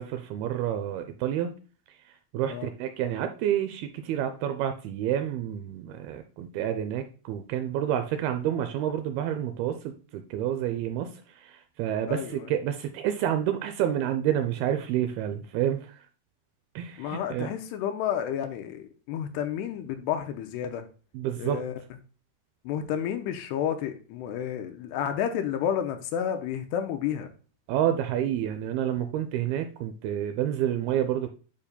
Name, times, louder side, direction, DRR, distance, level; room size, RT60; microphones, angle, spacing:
voice 1, 0.0-1.5 2.3-16.0 16.8-17.5 21.1-21.6 27.7-31.3, right 10 dB, 85° right, 8 dB, 2.2 m, -29 dB
voice 2, 12.1-12.5 17.0-20.9 21.4-21.7 22.6-27.3, left 9 dB, 85° left, 7 dB, 2.7 m, -31 dB
9.7 x 5.1 x 2.2 m, 0.38 s
omnidirectional pair, 4.9 m